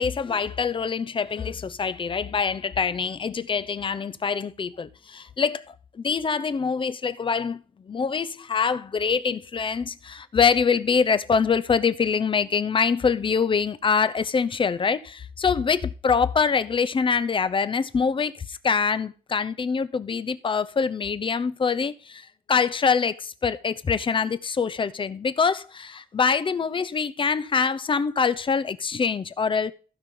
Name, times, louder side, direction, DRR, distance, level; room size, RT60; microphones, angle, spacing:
voice 1, 0.0-29.7, left 5 dB, 35° left, 0.7 m, -24 dB
15.5 x 5.4 x 3.8 m
cardioid pair, 115°, 15 cm